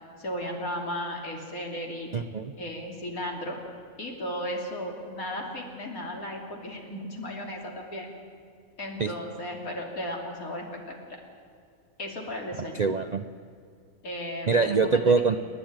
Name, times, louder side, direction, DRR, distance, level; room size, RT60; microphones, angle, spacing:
voice 1, 0.2-2.1 2.6-3.6 4.0-8.1 8.8-11.2 12.0-12.9 14.0-15.1, equal, 80° left, 1 dB, 3.4 m, -35 dB
voice 2, 2.1-2.5 9.0-9.1 12.8-13.2 14.5-15.4, right 4 dB, 50° right, 9 dB, 0.5 m, -23 dB
29.5 x 10.0 x 8.9 m, 2.3 s
omnidirectional pair, 1.5 m